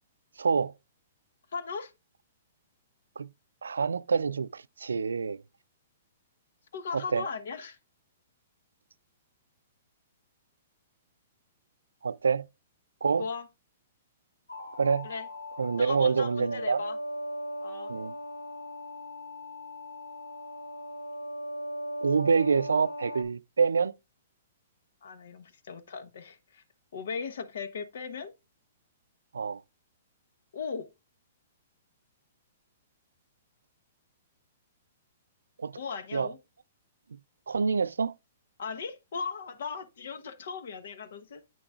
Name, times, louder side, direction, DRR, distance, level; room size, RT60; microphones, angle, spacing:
voice 1, 0.4-0.7 3.2-3.3 3.6-5.4 6.9-7.2 12.0-12.5 13.0-13.3 14.8-15.1 15.6-16.8 17.9-18.1 22.0-23.9 29.3-29.6 35.6-35.8 36.1-36.3 37.5-38.1, right 5 dB, 90° right, 0.4 m, -26 dB
voice 2, 1.5-1.9 6.7-7.8 13.2-13.5 15.0-15.3 15.8-17.0 17.6-17.9 25.0-26.6 26.9-28.3 30.5-30.9 35.8-36.4 38.6-41.4, left 5 dB, 70° left, 1.0 m, -37 dB
sound 1, 14.5-23.2, equal, 90° left, 1.5 m, -38 dB
8.8 x 6.0 x 2.4 m
hypercardioid pair, 125°, 0 cm